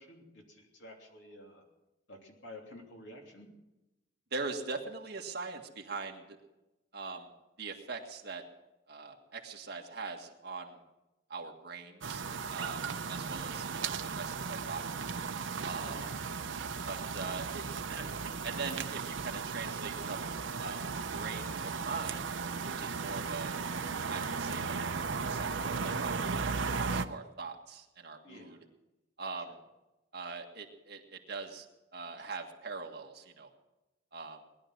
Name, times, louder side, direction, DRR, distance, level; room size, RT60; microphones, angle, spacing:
voice 1, 0.0-1.6 2.1-3.5 15.8-16.2 28.2-28.6 32.2-32.3, left 1 dB, 75° left, 1 dB, 3.1 m, -51 dB
voice 2, 4.3-6.4 6.9-7.3 7.6-8.4 8.9-10.8 11.3-12.8 13.1-15.1 15.6-16.0 16.9-18.2 18.4-20.3 20.6-22.3 22.6-23.6 24.1-28.6 29.2-29.5 30.1-31.7 31.9-33.5 34.1-34.4, right 4 dB, 55° right, 2 dB, 1.9 m, -42 dB
sound 1, 12.0-27.1, right 5 dB, 80° right, 0.8 m, -36 dB
19.5 x 11.5 x 6.3 m, 0.98 s
head